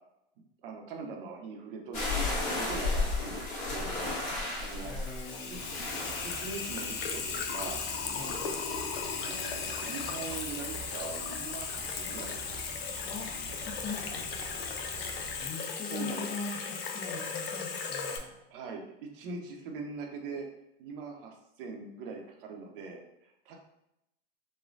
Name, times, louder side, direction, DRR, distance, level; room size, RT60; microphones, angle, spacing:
voice 1, 0.6-3.3 3.7-4.2 4.6-4.9 5.5-5.6 6.2-7.8 9.2-12.4 15.9-16.3 18.5-20.5 20.8-23.0 23.5-23.6, right 4 dB, 65° right, 2 dB, 0.7 m, -42 dB
sound 1, 1.9-7.4, left 3 dB, 40° left, 1.4 m, -34 dB
Water tap faucet / Sink (filling or washing), 4.6-18.2, left 5 dB, 80° left, 0.5 m, -36 dB
voice 2, 4.8-5.6 8.1-8.4 13.0-13.3 13.7-14.3 15.4-18.4, left 3 dB, 25° left, 0 dB, 0.7 m, -41 dB
sound 2, 5.5-15.5, right 4 dB, 25° right, 0.6 m, -47 dB
3.1 x 2.2 x 2.4 m, 0.84 s
hypercardioid pair, 105°, 30 cm